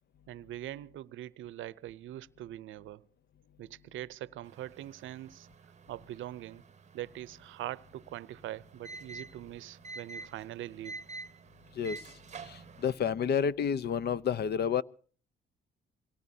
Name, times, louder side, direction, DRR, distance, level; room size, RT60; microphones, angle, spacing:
voice 1, 0.3-3.1 3.6-5.5 5.9-6.6 6.9-11.0, right 13 dB, 75° right, 0.6 m, -42 dB
sound 1, 4.4-13.0, right 4 dB, 35° right, 0.8 m, -49 dB
voice 2, 12.5-14.8, left 7 dB, 55° left, 0.7 m, -30 dB
25.0 x 18.5 x 2.8 m
cardioid pair, 90°, 20 cm